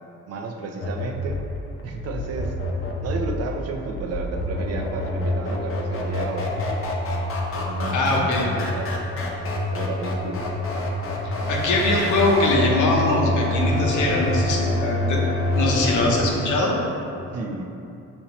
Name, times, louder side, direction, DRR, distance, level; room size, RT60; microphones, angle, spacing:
voice 1, 0.3-1.5 1.8-2.5 3.0-6.9 7.5-8.9 9.7-10.5 17.3-17.7, right 3 dB, 55° right, 3 dB, 0.5 m, -32 dB
sound 1, 0.8-16.2, left 1 dB, 45° left, 0.6 m, -26 dB
voice 2, 7.9-8.4 11.2-15.2 15.5-16.8, left 2 dB, 80° left, -2 dB, 0.8 m, -22 dB
5.3 x 2.9 x 2.9 m, 2.8 s
cardioid pair, 90°, 30 cm